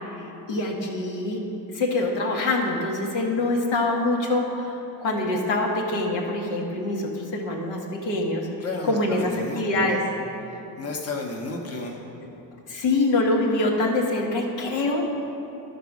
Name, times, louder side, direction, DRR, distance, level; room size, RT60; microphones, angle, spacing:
voice 1, 0.5-1.4 1.7-8.5 8.8-10.0 12.7-15.1, left 2 dB, 70° left, -2 dB, 1.6 m, -25 dB
voice 2, 8.6-10.0 10.8-12.0, left 3 dB, 35° left, -2 dB, 1.3 m, -32 dB
12.0 x 4.1 x 6.0 m, 2.9 s
cardioid pair, 85°, 45 cm